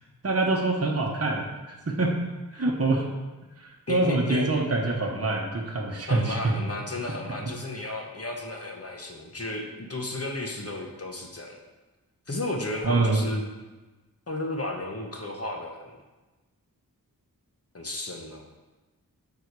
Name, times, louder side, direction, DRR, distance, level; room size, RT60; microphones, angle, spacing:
voice 1, 0.2-2.2 2.5-3.1 3.6-6.5 12.8-13.3, right 2 dB, 40° right, -1 dB, 1.0 m, -25 dB
voice 2, 3.9-4.4 6.1-11.6 12.3-13.4 14.3-16.0 17.7-18.4, left 2 dB, 40° left, 1 dB, 1.1 m, -33 dB
7.7 x 4.9 x 4.7 m, 1.2 s
wide cardioid pair, 75°, 36 cm